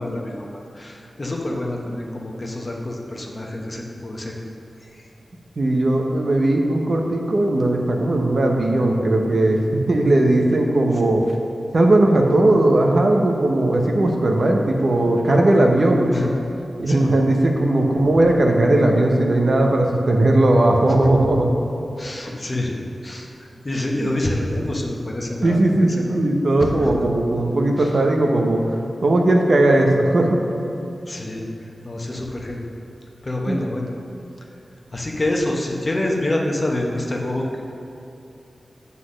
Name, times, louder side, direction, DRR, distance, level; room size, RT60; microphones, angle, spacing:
voice 1, 0.0-4.4 4.8-5.1 16.1-16.3 16.9-17.0 22.0-22.7 23.0-23.3 23.6-26.2 26.6-26.9 27.8-28.0 31.1-31.5 31.8-32.6 33.2-33.9 34.9-37.6, left 1 dB, 35° left, 0 dB, 1.0 m, -27 dB
voice 2, 5.6-11.2 11.7-16.1 16.8-21.5 25.4-30.4 33.5-33.6, right 1 dB, 55° right, 1 dB, 0.8 m, -18 dB
7.8 x 4.1 x 6.3 m, 2.8 s
wide cardioid pair, 85°, 0 cm